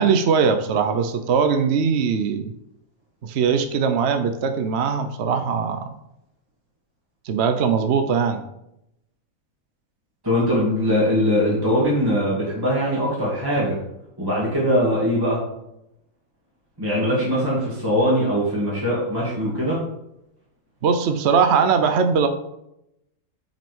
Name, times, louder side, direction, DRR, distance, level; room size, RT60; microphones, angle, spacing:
voice 1, 0.0-2.5 3.2-5.9 7.2-8.4 20.8-22.3, right 6 dB, 55° right, 8 dB, 0.8 m, -20 dB
voice 2, 10.2-13.8 14.2-15.4 16.8-19.8, equal, 15° right, -7 dB, 2.4 m, -21 dB
10.5 x 5.1 x 3.6 m, 0.83 s
omnidirectional pair, 1.6 m